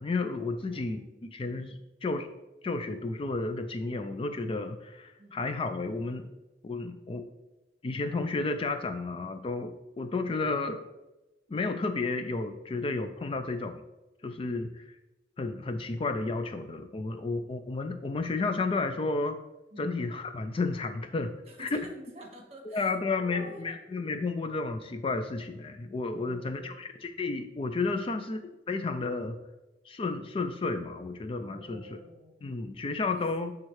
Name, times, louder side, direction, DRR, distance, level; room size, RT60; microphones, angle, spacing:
voice 1, 0.0-1.0 1.3-2.3 2.6-6.3 6.6-7.2 7.8-10.9 11.5-13.8 14.2-15.0 15.4-19.4 19.8-21.3 21.6-21.8 22.7-28.4 28.7-29.4 29.9-31.9 32.4-33.5, left 3 dB, 30° left, 8 dB, 0.4 m, -32 dB
voice 2, 0.6-1.2 5.2-5.4 19.7-20.0 21.5-22.9 23.2-23.7 26.1-26.7 27.9-28.1 31.5-32.3 33.1-33.4, equal, 35° right, 1 dB, 1.5 m, -48 dB
10.5 x 3.6 x 3.2 m, 1.0 s
head